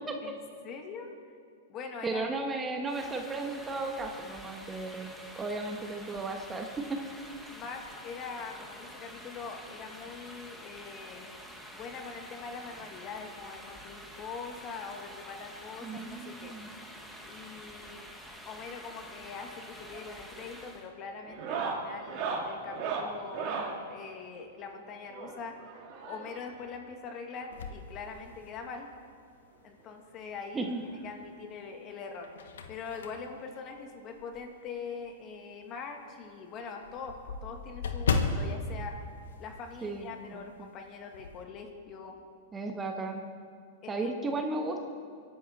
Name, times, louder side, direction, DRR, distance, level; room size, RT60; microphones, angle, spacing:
voice 1, 0.6-1.1 1.7-2.2 7.5-11.3 11.7-16.6 17.2-18.1 18.5-25.6 26.0-28.9 29.6-30.7 31.0-39.0 39.4-42.2 43.8-44.4, left 5 dB, 35° left, 3 dB, 2.2 m, -43 dB
voice 2, 2.0-5.1 5.4-7.0 15.8-16.7 30.5-30.8 39.8-40.1 40.3-40.4 42.5-43.2 43.9-44.8, right 3 dB, 15° right, 3 dB, 1.5 m, -34 dB
sound 1, 2.9-20.9, equal, ahead, 1.9 m, -48 dB
sound 2, 19.7-20.1 20.4-20.7 21.3-23.8 25.1-26.5 27.5-27.6 27.8-28.0 28.4-28.5 29.8-29.9 31.2-31.3, right 5 dB, 45° right, 2.7 m, -36 dB
sound 3, 27.5-28.8 29.4-29.5 30.9-31.5 31.9-34.6 35.0-35.2 35.5-35.6 35.9-36.0 36.2-40.0 40.3-40.5 40.8-41.4, left 4 dB, 80° left, 1.4 m, -35 dB
24.0 x 11.0 x 4.3 m, 2.3 s
hypercardioid pair, 120°, 0 cm